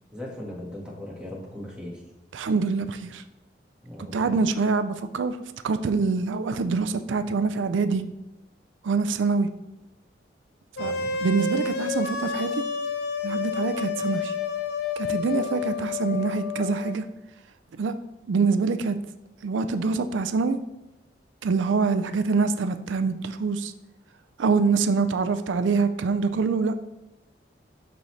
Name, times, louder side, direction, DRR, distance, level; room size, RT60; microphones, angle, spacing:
voice 1, 0.1-2.0 3.8-4.4 10.8-11.1, left 1 dB, 5° right, -4 dB, 1.6 m, -38 dB
voice 2, 2.3-3.2 4.1-5.4 5.6-8.0 8.8-9.5 10.8-10.9 11.2-12.6 13.2-14.3 15.0-17.1 17.7-17.9 18.3-19.0 19.4-20.6 21.4-23.7 24.4-26.8, right 4 dB, 90° right, 10 dB, 0.4 m, -25 dB
sound 1, 10.8-16.9, left 5 dB, 60° left, 0.6 m, -29 dB
12.0 x 4.0 x 3.2 m, 0.94 s
head